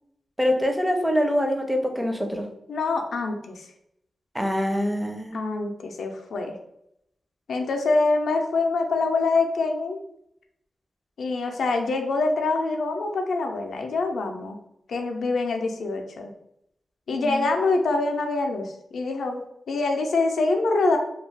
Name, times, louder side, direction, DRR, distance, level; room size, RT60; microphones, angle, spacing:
voice 1, 0.4-2.5 4.3-5.4 17.1-17.5, equal, 5° right, 4 dB, 0.4 m, -24 dB
voice 2, 2.7-3.7 5.3-6.5 7.5-10.0 11.2-14.6 14.9-16.3 17.1-19.4 19.7-21.0, left 3 dB, 85° left, 3 dB, 0.4 m, -25 dB
2.3 x 2.3 x 3.2 m, 0.78 s
cardioid pair, 80°, 0 cm